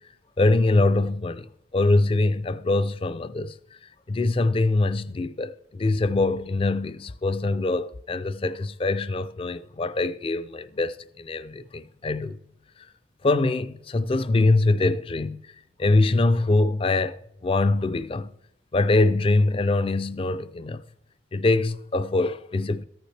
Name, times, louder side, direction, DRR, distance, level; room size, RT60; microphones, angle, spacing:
voice 1, 0.4-1.5 1.7-3.5 4.1-12.4 13.2-15.4 15.8-18.3 18.7-20.8 21.3-22.8, left 2 dB, 30° left, 0.4 m, -23 dB
14.0 x 9.1 x 3.3 m
head